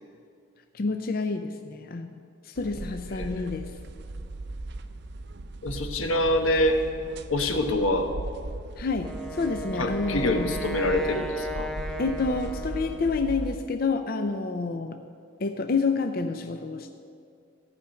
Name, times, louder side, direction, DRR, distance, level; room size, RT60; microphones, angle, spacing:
voice 1, 0.7-3.7 8.8-10.6 12.0-15.0 15.4-16.9, left 4 dB, 45° left, 7 dB, 0.5 m, -29 dB
sound 1, 2.6-13.6, right 2 dB, 55° right, 0.6 m, -38 dB
voice 2, 3.1-3.5 5.6-6.8 7.3-8.1 9.8-11.7, left 1 dB, 90° left, 6 dB, 1.1 m, -25 dB
Wind instrument woodwind instrument, 9.0-13.3, equal, 5° left, 0.6 m, -36 dB
14.5 x 5.7 x 8.9 m, 2.4 s
head